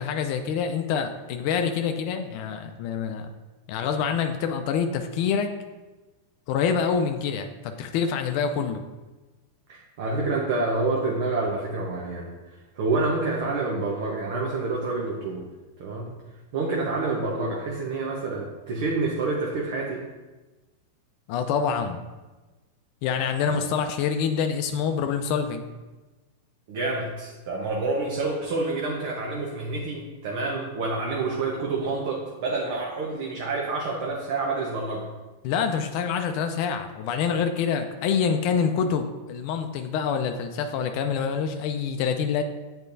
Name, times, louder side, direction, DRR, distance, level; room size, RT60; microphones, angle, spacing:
voice 1, 0.0-3.3 3.7-5.5 6.5-8.8 21.3-22.0 23.0-25.7 35.4-42.4, left 6 dB, 55° left, 6 dB, 0.5 m, -26 dB
voice 2, 9.7-12.3 12.8-15.4 15.8-16.1 16.5-20.0 23.4-23.6 26.7-35.1, right 3 dB, 65° right, -2 dB, 1.0 m, -28 dB
8.2 x 4.3 x 2.7 m, 1.2 s
hypercardioid pair, 110°, 0 cm